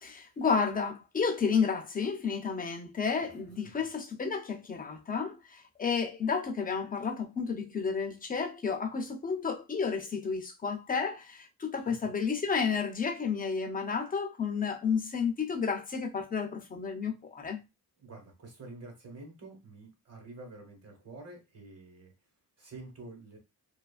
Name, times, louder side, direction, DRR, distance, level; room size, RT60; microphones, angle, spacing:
voice 1, 0.0-17.6, left 5 dB, 25° left, 0.4 m, -31 dB
voice 2, 18.0-22.1 22.6-23.4, right 2 dB, 40° right, 1.1 m, -48 dB
2.8 x 2.4 x 2.3 m
wide cardioid pair, 140°, 38 cm